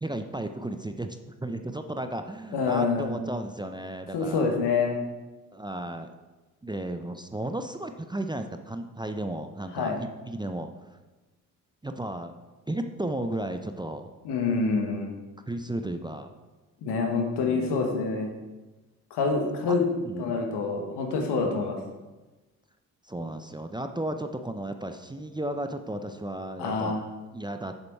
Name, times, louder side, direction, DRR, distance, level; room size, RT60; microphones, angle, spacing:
voice 1, 0.0-4.6 5.5-6.1 6.6-10.7 11.8-12.3 12.7-14.1 15.5-16.3 17.4-17.9 19.7-19.8 20.0-20.4 21.4-21.7 23.0-26.9 27.3-27.7, right 1 dB, 10° right, 7 dB, 0.6 m, -34 dB
voice 2, 2.5-3.1 4.1-5.0 9.7-10.0 14.2-15.1 16.8-18.3 19.1-19.8 20.2-21.8 26.6-27.0, left 4 dB, 70° left, 2 dB, 1.5 m, -26 dB
6.8 x 6.7 x 4.7 m, 1.2 s
hypercardioid pair, 40°, 41 cm